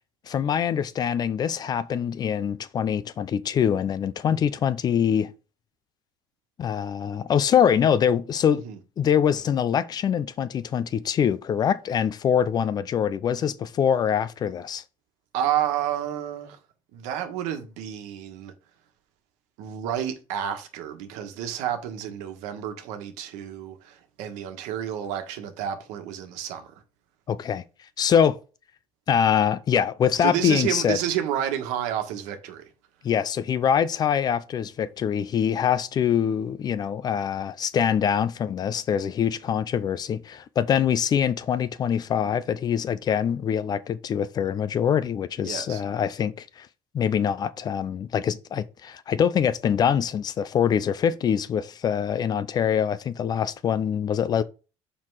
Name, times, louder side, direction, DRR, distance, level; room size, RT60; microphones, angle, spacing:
voice 1, 0.3-5.3 6.6-8.6 9.0-14.8 27.3-27.6 28.0-28.4 29.1-31.0 33.0-46.7 46.9-54.4, left 8 dB, 35° left, 0.5 m, -24 dB
voice 2, 15.3-16.6 16.9-18.5 19.6-26.7 30.2-32.7 45.4-45.8, right 10 dB, 85° right, 1.4 m, -30 dB
5.7 x 4.6 x 4.7 m
cardioid pair, 140°, 12 cm